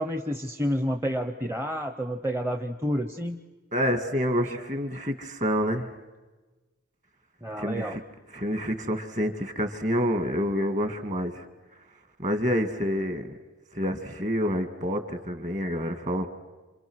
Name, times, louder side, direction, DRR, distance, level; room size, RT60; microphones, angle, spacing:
voice 1, 0.0-3.4 7.4-8.0, equal, 10° right, 6 dB, 0.7 m, -29 dB
voice 2, 3.7-5.9 7.6-8.0 8.3-11.5 12.2-13.3 13.7-16.3, equal, 35° right, 8 dB, 2.0 m, -28 dB
28.0 x 27.5 x 6.3 m, 1.2 s
head